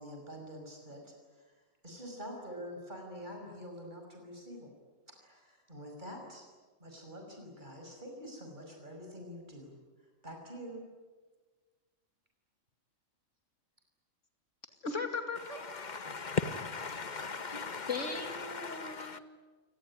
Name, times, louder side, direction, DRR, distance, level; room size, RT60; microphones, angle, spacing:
voice 1, 0.0-1.5 1.8-4.7 5.1-6.4 6.8-9.8 10.2-10.8, equal, 35° right, 2 dB, 5.8 m, -46 dB
voice 2, 14.8-16.1 17.9-19.2, left 4 dB, 65° left, 6 dB, 2.7 m, -38 dB
voice 3, 15.8-17.9 18.4-19.2, left 5 dB, 35° left, 12 dB, 1.3 m, -37 dB
29.0 x 18.5 x 10.0 m, 1.3 s
omnidirectional pair, 1.4 m